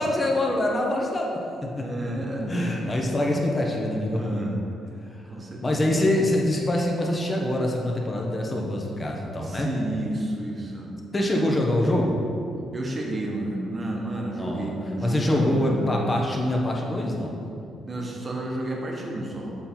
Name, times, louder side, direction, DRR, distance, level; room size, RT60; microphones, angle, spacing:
voice 1, 0.0-1.9 2.5-4.5 5.1-5.2 5.6-9.7 11.1-12.2 14.4-14.7 15.0-17.4, left 1 dB, 25° left, -1 dB, 1.2 m, -25 dB
voice 2, 1.8-2.9 4.1-4.7 5.3-6.1 9.4-10.9 12.7-16.1 17.8-19.5, right 1 dB, 30° right, -1 dB, 1.3 m, -31 dB
7.4 x 4.4 x 4.4 m, 2.7 s
cardioid pair, 90°, 0 cm